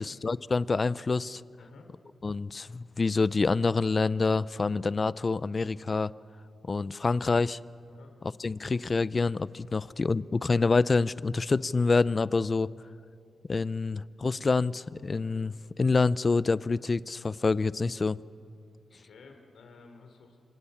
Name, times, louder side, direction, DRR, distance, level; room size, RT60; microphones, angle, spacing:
voice 1, 0.0-1.4 2.2-6.1 6.7-7.6 8.4-12.7 13.5-18.2, left 4 dB, 35° left, 18 dB, 0.6 m, -27 dB
voice 2, 1.6-1.9 7.9-8.1 18.9-20.4, left 4 dB, 80° left, 4 dB, 4.3 m, -53 dB
27.0 x 26.0 x 7.3 m, 2.6 s
cardioid pair, 90°, 0 cm